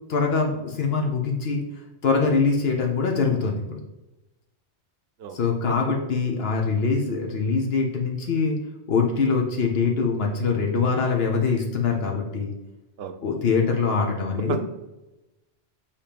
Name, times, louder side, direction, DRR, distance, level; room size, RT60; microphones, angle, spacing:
voice 1, 0.1-1.6 2.0-3.8 5.3-8.6 8.9-12.5 13.2-14.6, left 4 dB, 65° left, 1 dB, 1.0 m, -23 dB
voice 2, 5.2-5.4 13.0-13.2 14.3-14.6, right 6 dB, 70° right, 9 dB, 0.8 m, -31 dB
6.8 x 2.9 x 5.1 m, 1.0 s
omnidirectional pair, 1.1 m